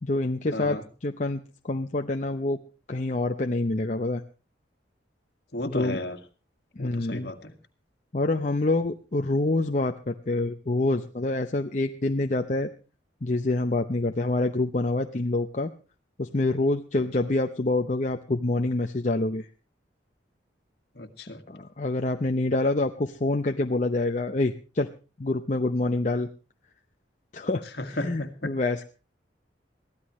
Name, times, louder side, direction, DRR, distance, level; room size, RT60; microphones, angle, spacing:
voice 1, 0.0-2.6 2.9-4.2 5.7-6.0 6.8-7.3 8.1-12.7 13.2-15.7 16.2-19.5 21.5-24.9 25.2-26.3 27.3-28.8, left 2 dB, 40° left, 4 dB, 0.7 m, -26 dB
voice 2, 0.5-0.8 5.5-6.2 6.8-7.5 21.0-21.4 27.8-28.5, left 1 dB, 55° left, 7 dB, 2.0 m, -33 dB
23.0 x 16.0 x 3.1 m, 0.34 s
head